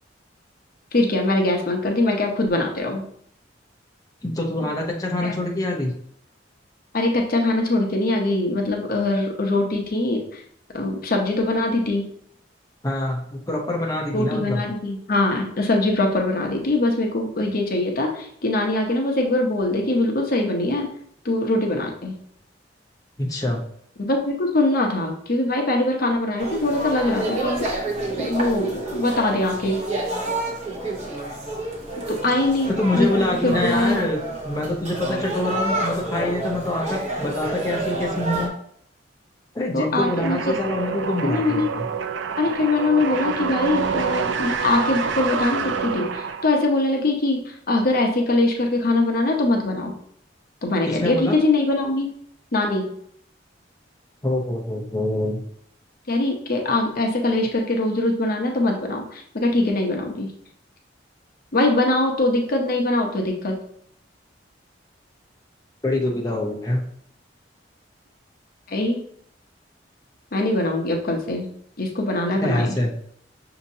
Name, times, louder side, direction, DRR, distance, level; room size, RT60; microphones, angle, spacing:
voice 1, 0.9-3.0 4.6-4.7 5.2-5.3 6.9-10.4 10.7-12.0 14.1-20.9 21.2-22.1 24.0-27.6 28.1-29.8 32.1-33.1 33.4-34.1 39.7-40.4 41.2-41.7 42.4-49.9 50.6-52.1 52.5-52.9 56.1-60.3 61.5-63.6 68.7-69.0 70.3-71.5 71.8-72.7, left 2 dB, 55° left, 2 dB, 0.8 m, -22 dB
voice 2, 4.2-5.9 12.8-14.6 23.2-23.6 32.7-38.5 39.5-41.9 50.8-51.4 54.2-55.4 65.8-66.8 72.4-72.9, left 1 dB, 20° left, -1 dB, 0.6 m, -25 dB
sound 1, 26.4-38.5, right 2 dB, 40° right, 0.9 m, -29 dB
sound 2, 40.0-46.8, right 6 dB, 85° right, 0.4 m, -27 dB
6.2 x 2.8 x 2.7 m, 0.65 s
head